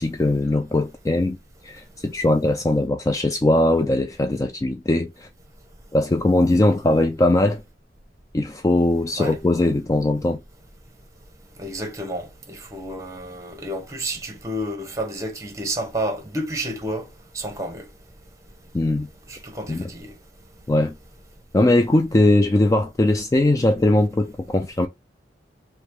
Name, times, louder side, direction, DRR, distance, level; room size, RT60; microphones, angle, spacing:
voice 1, 0.0-1.4 1.6-5.3 5.9-7.6 8.3-10.4 18.7-19.1 19.7-19.9 20.7-20.9 21.5-24.9, left 2 dB, 20° left, 0.3 m, -20 dB
voice 2, 11.6-17.1 17.3-17.9 19.3-20.1, right 1 dB, 20° right, 1.2 m, -30 dB
3.2 x 3.0 x 4.7 m
head